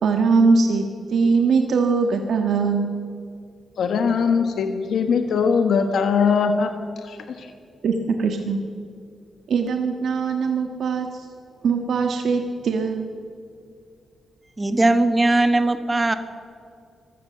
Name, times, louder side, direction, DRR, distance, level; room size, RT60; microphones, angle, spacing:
voice 1, 0.0-2.9 7.8-8.6 9.5-11.3 11.6-13.1, right 4 dB, 70° right, 4 dB, 1.5 m, -21 dB
voice 2, 3.8-6.7 7.0-7.5, left 5 dB, 80° left, 6 dB, 1.4 m, -21 dB
voice 3, 14.6-16.1, right 2 dB, 15° right, 9 dB, 1.4 m, -19 dB
25.0 x 16.0 x 6.9 m, 2.4 s
wide cardioid pair, 145°, 0 cm